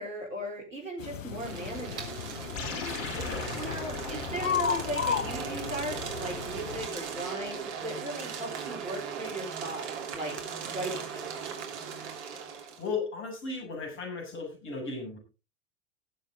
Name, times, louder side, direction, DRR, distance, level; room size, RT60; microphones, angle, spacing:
voice 1, 0.0-2.2 3.5-9.9 10.1-10.4 10.7-11.3, right 1 dB, 85° right, 0 dB, 4.0 m, -37 dB
sound 1, 1.0-6.9, left 7 dB, 85° left, 0.7 m, -35 dB
sound 2, 1.3-12.9, right 6 dB, 60° right, 3.1 m, -38 dB
sound 3, 2.6-7.2, left 4 dB, 50° left, 3.6 m, -40 dB
voice 2, 3.1-3.6 12.8-15.2, left 4 dB, 35° left, 3 dB, 7.1 m, -36 dB
19.0 x 7.6 x 3.7 m, 0.31 s
figure-of-eight pair, 85°, 38 cm